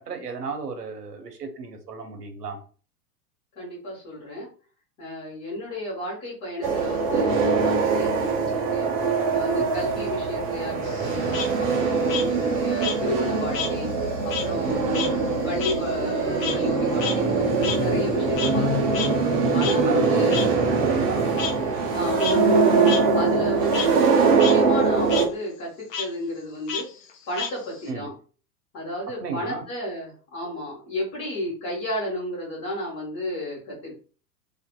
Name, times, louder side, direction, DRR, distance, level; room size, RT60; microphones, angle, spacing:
voice 1, 0.0-2.6 9.6-9.9 14.6-15.0 19.6-21.3 27.9-28.1 29.2-29.6, right 5 dB, 70° right, 5 dB, 0.8 m, -34 dB
voice 2, 3.5-4.5 5.0-8.9 9.3-11.3 11.7-13.9 14.2-15.1 15.4-19.0 19.5-20.5 21.9-26.9 27.3-28.1 28.7-33.9, left 1 dB, 30° left, -6 dB, 1.3 m, -32 dB
sound 1, 6.6-25.3, right 4 dB, 30° right, 0.5 m, -22 dB
Frog, 10.8-13.8 14.1-18.7 18.9-19.1 19.6-19.7 20.3-20.4 21.4-21.5 22.0-22.3 22.8-23.0 23.4-23.9 24.3-24.5 24.8-25.3 25.9-26.1 26.7-27.9, left 6 dB, 50° left, 0.6 m, -31 dB
2.6 x 2.4 x 2.2 m, 0.40 s
figure-of-eight pair, 95°, 50 cm